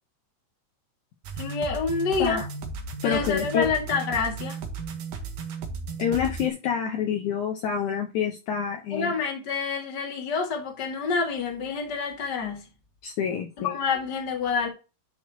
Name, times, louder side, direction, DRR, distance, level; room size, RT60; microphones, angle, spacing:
sound 1, 1.2-6.5, right 4 dB, 70° right, 2.7 m, -35 dB
voice 1, 1.4-2.4 3.0-4.6 8.9-12.7 13.6-14.7, left 5 dB, 35° left, 2.3 m, -27 dB
voice 2, 3.0-3.7 6.0-9.1 13.0-13.8, left 8 dB, 70° left, 2.2 m, -27 dB
10.5 x 6.3 x 2.9 m
omnidirectional pair, 4.0 m